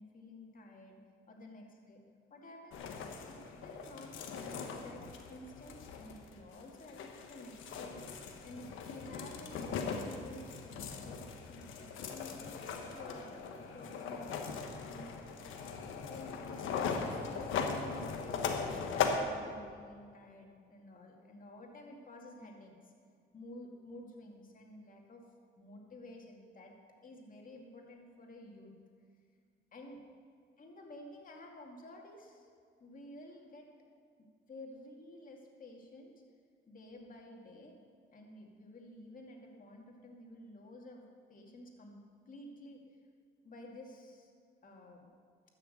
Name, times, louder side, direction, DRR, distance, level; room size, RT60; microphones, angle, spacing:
voice 1, 0.0-2.0 2.3-8.1 8.4-15.1 16.0-22.9 23.3-25.2 25.6-26.8 27.0-28.7 29.7-30.0 30.6-32.5 32.8-33.7 34.2-36.1 36.7-37.8 38.1-43.0 43.4-44.3 44.6-45.1, left 1 dB, 45° left, 0 dB, 2.4 m, -52 dB
sound 1, 2.7-19.2, left 5 dB, 85° left, 1.2 m, -39 dB
13.0 x 6.6 x 7.9 m, 2.2 s
cardioid pair, 90°, 20 cm